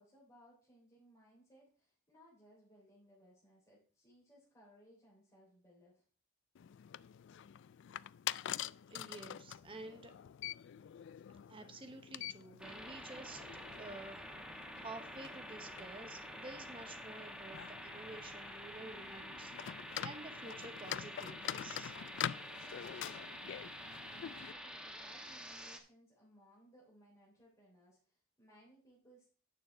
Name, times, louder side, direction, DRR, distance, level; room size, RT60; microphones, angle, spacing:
voice 1, 0.0-6.0 23.8-29.4, equal, 15° left, -7 dB, 3.4 m, -64 dB
sound 1, 6.5-24.5, left 11 dB, 60° left, 0.3 m, -46 dB
voice 2, 8.9-10.1 11.5-13.4 13.8-22.0, right 2 dB, 25° right, 7 dB, 1.0 m, -51 dB
sound 2, 12.6-25.8, equal, 5° right, 1.3 m, -48 dB
9.6 x 6.6 x 4.3 m, 0.41 s
head